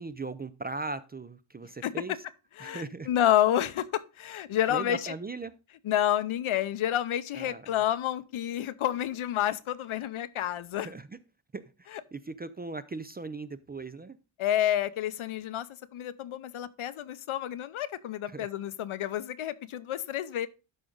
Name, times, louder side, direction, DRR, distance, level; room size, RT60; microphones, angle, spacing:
voice 1, 0.0-2.2 2.6-3.1 4.7-5.5 7.3-7.7 10.7-11.2 11.5-14.2 18.2-18.5, right 3 dB, 20° right, 0.3 m, -39 dB
voice 2, 2.6-5.1 5.8-10.9 14.4-15.7 15.9-20.5, left 11 dB, 80° left, 0.8 m, -29 dB
12.0 x 5.0 x 3.8 m
wide cardioid pair, 120°, 49 cm